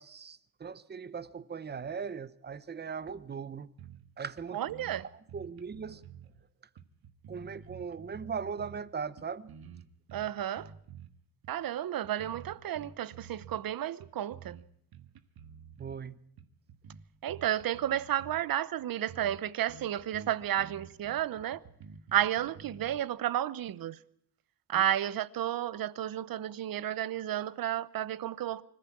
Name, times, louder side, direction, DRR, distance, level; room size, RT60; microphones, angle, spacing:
voice 1, 0.0-3.7 4.2-4.7 5.0-6.0 6.3-6.5 7.3-9.5 15.8-16.2 24.7-24.8, right 6 dB, 30° right, 0.8 m, -39 dB
sound 1, 3.8-4.1 4.4-4.5 4.7-6.3 6.8-8.8 9.2-11.1 11.4-11.6 12.0-13.7 14.0-14.6 14.9-16.0 16.4-18.4 18.8-18.9 19.1-19.4 19.7-23.0, right 7 dB, 90° right, 1.7 m, -50 dB
voice 2, 4.5-5.0 10.1-10.7 11.5-14.6 17.2-21.6 22.1-24.0 24.7-28.6, right 11 dB, 70° right, 0.9 m, -32 dB
25.5 x 15.0 x 8.6 m
wide cardioid pair, 165°, 36 cm